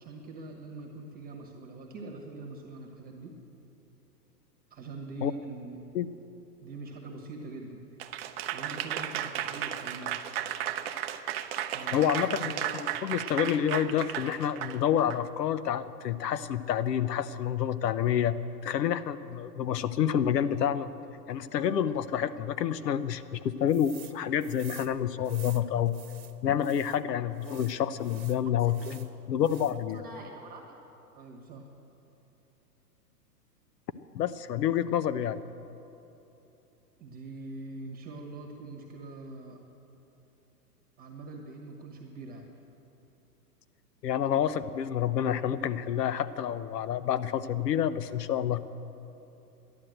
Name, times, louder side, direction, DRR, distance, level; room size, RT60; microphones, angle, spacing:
voice 1, 0.0-3.3 4.7-5.8 6.6-7.8 8.5-10.1 11.7-12.6 28.6-28.9 29.9-30.8 31.1-31.7 37.0-39.6 41.0-42.5, right 3 dB, 20° right, 1 dB, 1.2 m, -43 dB
Applause / Crowd, 8.0-15.2, right 11 dB, 40° right, 0.6 m, -34 dB
voice 2, 11.9-18.4 18.6-20.9 21.3-26.0 26.4-30.0 34.1-35.4 44.0-48.6, left 9 dB, 75° left, 14 dB, 0.8 m, -28 dB
sound 1, 23.7-24.1 24.4-27.0 27.4-29.1 29.4-29.9, right 11 dB, 60° right, 1.1 m, -50 dB
12.0 x 11.0 x 7.7 m, 2.9 s
hypercardioid pair, 125°, 49 cm